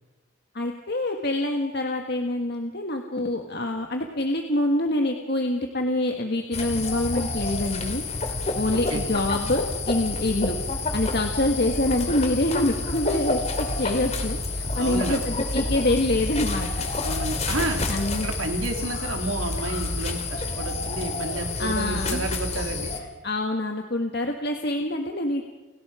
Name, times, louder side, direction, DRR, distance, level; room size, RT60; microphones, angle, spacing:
voice 1, 0.5-8.0 8.5-10.6 10.9-16.9 17.9-18.3 21.6-22.3 23.2-25.4, left 1 dB, 50° left, 3 dB, 1.7 m, -26 dB
sound 1, 6.5-23.0, left 2 dB, 35° left, 2.4 m, -29 dB
voice 2, 8.7-9.0 14.8-15.2 17.0-17.8 18.2-22.9, right 2 dB, 85° right, 3 dB, 3.3 m, -30 dB
30.0 x 18.0 x 5.0 m, 1.1 s
head